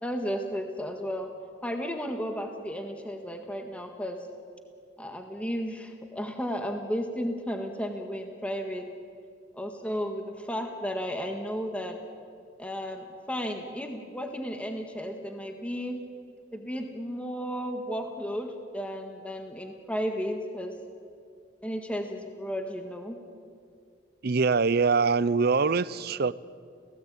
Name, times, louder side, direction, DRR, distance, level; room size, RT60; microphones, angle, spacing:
voice 1, 0.0-1.3 1.6-4.2 5.0-8.9 9.5-12.0 12.6-16.0 16.5-20.7 21.6-23.2, equal, 5° left, 4 dB, 1.6 m, -33 dB
voice 2, 24.2-26.3, right 4 dB, 55° right, 19 dB, 0.6 m, -23 dB
29.0 x 17.5 x 8.8 m, 2.3 s
head